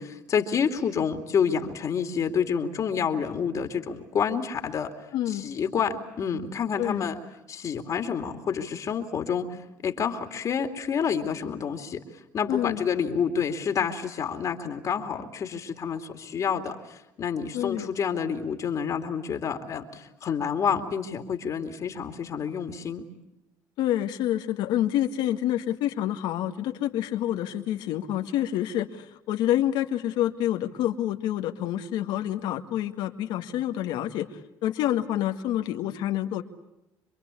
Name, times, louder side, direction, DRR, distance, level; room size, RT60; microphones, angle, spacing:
voice 1, 0.0-4.9 5.3-7.2 7.5-9.5 9.8-12.0 12.3-23.0, left 7 dB, 45° left, 5 dB, 2.7 m, -28 dB
voice 2, 5.1-5.5 6.8-7.1 12.5-12.9 17.5-17.9 23.8-34.3 34.6-36.4, left 12 dB, 75° left, 6 dB, 1.9 m, -27 dB
27.0 x 23.5 x 8.5 m, 0.91 s
cardioid pair, 110°, 8 cm